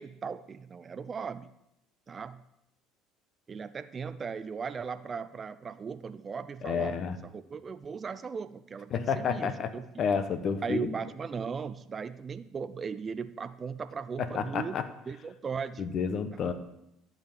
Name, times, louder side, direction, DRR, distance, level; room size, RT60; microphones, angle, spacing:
voice 1, 0.0-1.5 2.1-2.4 3.5-9.9 10.6-14.8 15.1-15.8 16.3-16.5, right 6 dB, 35° right, 13 dB, 0.5 m, -37 dB
voice 2, 6.6-7.1 8.9-9.7 10.0-10.9 14.2-14.9 15.8-16.5, left 6 dB, 50° left, 11 dB, 1.1 m, -30 dB
11.5 x 5.2 x 7.5 m, 0.83 s
hypercardioid pair, 65°, 0 cm